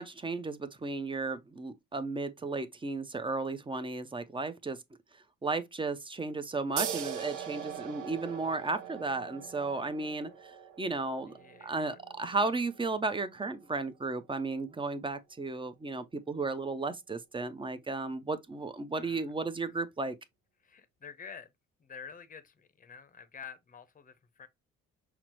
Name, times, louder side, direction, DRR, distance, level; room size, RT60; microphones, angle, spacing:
voice 1, 0.0-4.8 5.4-11.3 11.6-20.2, right 3 dB, 15° right, 0.5 m, -34 dB
sound 1, 6.8-13.9, right 8 dB, 75° right, 0.9 m, -41 dB
voice 2, 11.3-12.0 19.0-19.3 20.6-21.5 21.8-24.5, left 7 dB, 25° left, 0.7 m, -49 dB
5.8 x 2.0 x 3.0 m
cardioid pair, 90°, 30 cm